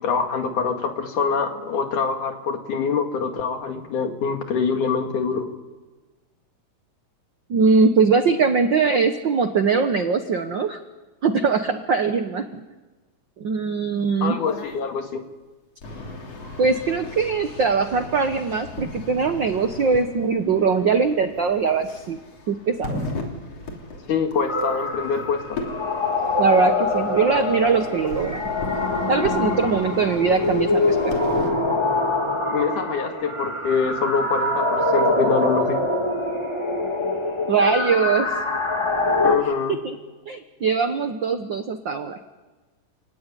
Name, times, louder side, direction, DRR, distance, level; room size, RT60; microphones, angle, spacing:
voice 1, 0.0-5.5 14.2-15.2 24.1-25.6 32.5-35.8 39.2-39.8, left 5 dB, 70° left, 5 dB, 3.6 m, -24 dB
voice 2, 7.5-10.8 11.2-12.6 13.4-14.4 16.6-22.2 22.5-23.0 26.4-28.4 29.1-31.1 37.5-38.3 39.7-39.9 40.3-42.2, right 5 dB, 70° right, 7 dB, 1.0 m, -21 dB
sound 1, 14.4-14.8 15.8-31.5, left 2 dB, 50° left, 4.0 m, -36 dB
sound 2, 24.5-39.4, left 2 dB, 15° left, 1.3 m, -24 dB
29.0 x 17.5 x 9.9 m, 1.2 s
omnidirectional pair, 3.8 m